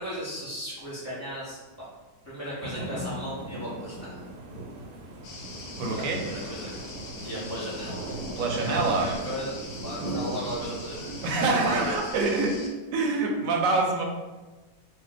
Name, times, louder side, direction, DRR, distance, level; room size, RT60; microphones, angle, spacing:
voice 1, 0.0-1.9 2.2-4.2 5.9-6.8 7.2-8.2 8.5-9.5 9.8-11.1 11.4-12.2, right 1 dB, 15° right, -9 dB, 0.5 m, -36 dB
sound 1, 2.6-11.9, right 1 dB, 90° right, 1.2 m, -37 dB
sound 2, 5.2-12.7, left 3 dB, 80° left, 1.1 m, -43 dB
voice 2, 5.8-6.2 8.3-9.1 11.2-12.6 12.9-14.0, right 3 dB, 70° right, 1 dB, 0.9 m, -25 dB
2.6 x 2.1 x 3.9 m, 1.2 s
omnidirectional pair, 1.6 m